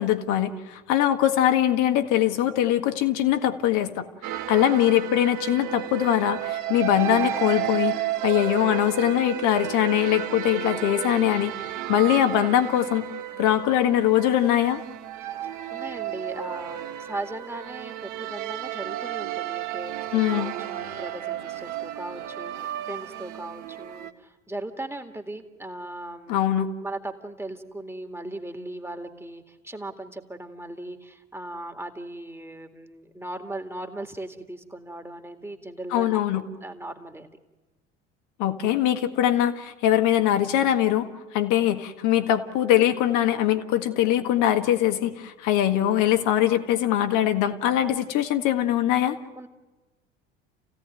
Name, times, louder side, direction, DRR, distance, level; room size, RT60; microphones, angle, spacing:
voice 1, 0.0-4.1 4.5-11.5 11.9-13.1 13.4-14.8 20.1-20.5 26.3-26.7 35.9-36.4 38.4-41.1 41.3-49.2, left 12 dB, 55° left, 8 dB, 1.8 m, -22 dB
sound 1, 4.2-24.1, right 12 dB, 50° right, 1.5 m, -32 dB
voice 2, 15.4-26.4 26.8-37.3 49.4-49.5, right 1 dB, 5° right, 5 dB, 2.2 m, -38 dB
28.5 x 16.5 x 9.1 m, 1.2 s
figure-of-eight pair, 65°, 36 cm